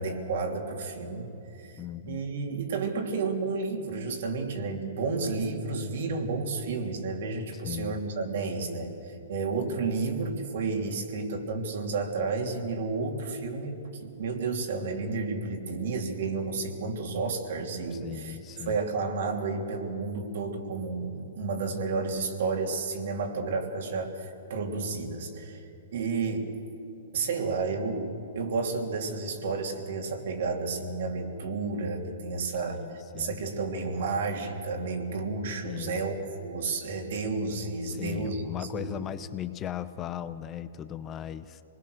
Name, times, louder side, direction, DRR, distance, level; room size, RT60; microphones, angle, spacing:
voice 1, 0.0-26.5 27.1-32.8 33.1-39.1, right 4 dB, 65° right, 2 dB, 3.1 m, -31 dB
voice 2, 1.8-2.2 7.5-8.0 17.9-18.8 32.7-33.4 35.6-36.0 37.9-41.6, left 10 dB, 20° left, 12 dB, 0.7 m, -38 dB
26.0 x 20.0 x 6.5 m, 2.8 s
hypercardioid pair, 145°, 0 cm